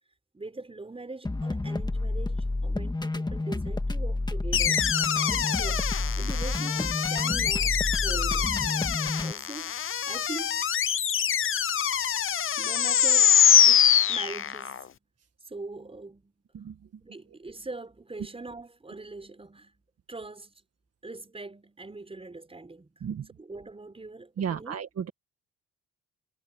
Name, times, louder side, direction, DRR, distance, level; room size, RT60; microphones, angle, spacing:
voice 1, 0.3-4.9 5.3-8.6 9.2-9.7 10.0-10.6 12.6-13.4 13.6-15.0 15.5-16.3 17.0-19.8 20.1-20.6 21.0-23.0 23.4-24.8, right 3 dB, 20° right, 6.0 m, -42 dB
sound 1, 1.2-9.3, left 2 dB, 15° left, 1.9 m, -30 dB
sound 2, 4.5-14.8, left 9 dB, 45° left, 0.8 m, -24 dB
voice 2, 24.4-25.1, right 8 dB, 55° right, 1.9 m, -33 dB
cardioid pair, 90°, 30 cm